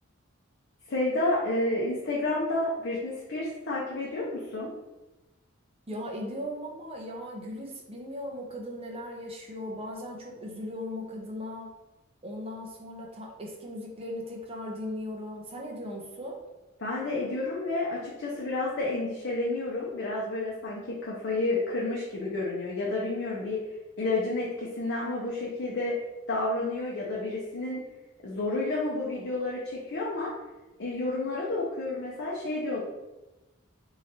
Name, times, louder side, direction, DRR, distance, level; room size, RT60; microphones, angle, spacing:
voice 1, 0.9-4.7 16.8-23.6 24.0-26.0 26.3-27.8 28.2-30.3 30.8-32.8, left 2 dB, 55° left, -5 dB, 0.8 m, -30 dB
voice 2, 5.9-11.7 12.2-16.4, left 1 dB, 30° right, -1 dB, 0.8 m, -38 dB
3.7 x 3.1 x 4.2 m, 1.1 s
head